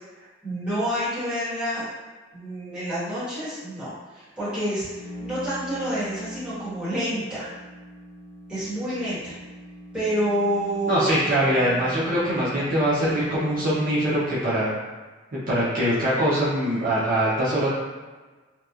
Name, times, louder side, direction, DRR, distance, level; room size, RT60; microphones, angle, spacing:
voice 1, 0.1-1.9 2.3-7.5 8.5-9.3 9.9-11.1, equal, 5° right, -14 dB, 1.2 m, -28 dB
sound 1, 4.6-14.5, equal, 50° left, 0.7 m, -42 dB
voice 2, 10.9-14.7 15.3-17.7, equal, 45° right, -9 dB, 0.5 m, -23 dB
2.8 x 2.2 x 2.3 m, 1.3 s
head